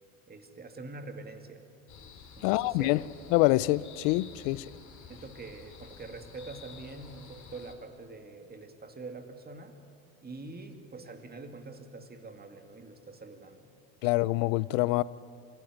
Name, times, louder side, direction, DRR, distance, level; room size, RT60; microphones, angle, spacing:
voice 1, 0.3-1.6 2.3-2.9 4.4-4.5 5.1-9.8 10.2-13.7, right 3 dB, 20° right, 2.3 m, -45 dB
sound 1, 1.9-7.7, left 6 dB, 45° left, 3.4 m, -51 dB
voice 2, 2.4-3.0 3.3-4.6 14.0-15.0, left 20 dB, 65° left, 0.7 m, -25 dB
25.0 x 15.0 x 9.5 m
hypercardioid pair, 85°, 42 cm